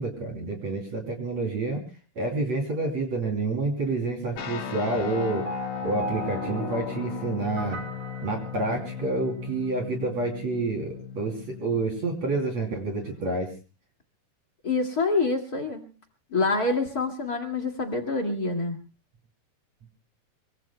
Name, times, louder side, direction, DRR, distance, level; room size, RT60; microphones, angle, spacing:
voice 1, 0.0-1.8 2.2-5.5 5.8-7.8 8.2-13.5, right 3 dB, 45° right, 1 dB, 3.9 m, -28 dB
sound 1, 4.4-13.3, left 9 dB, 80° left, 4.5 m, -37 dB
sound 2, 4.9-9.2, equal, 20° right, 1.7 m, -37 dB
voice 2, 14.6-15.9 16.3-18.8, left 3 dB, 35° left, 3 dB, 1.7 m, -26 dB
25.0 x 24.0 x 2.2 m, 0.34 s
omnidirectional pair, 4.8 m